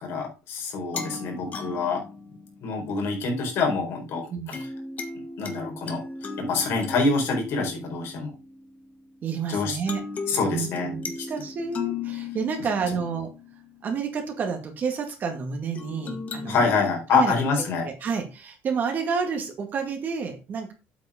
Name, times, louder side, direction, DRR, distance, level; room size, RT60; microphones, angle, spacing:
voice 1, 0.0-2.0 2.6-4.7 5.4-6.0 6.4-8.3 9.5-9.8 10.3-10.9 12.9-13.0 16.5-17.9, left 4 dB, 60° left, 2 dB, 4.4 m, -26 dB
sound 1, 0.9-3.2 4.5-9.3 9.9-14.0 15.7-16.9, left 4 dB, 30° left, 1.5 m, -37 dB
voice 2, 9.2-10.0 10.3-11.0 11.3-13.3 13.8-16.6 17.1-20.7, right 5 dB, 40° right, 3 dB, 2.0 m, -30 dB
8.3 x 6.2 x 5.0 m, 0.30 s
cardioid pair, 145°, 5 cm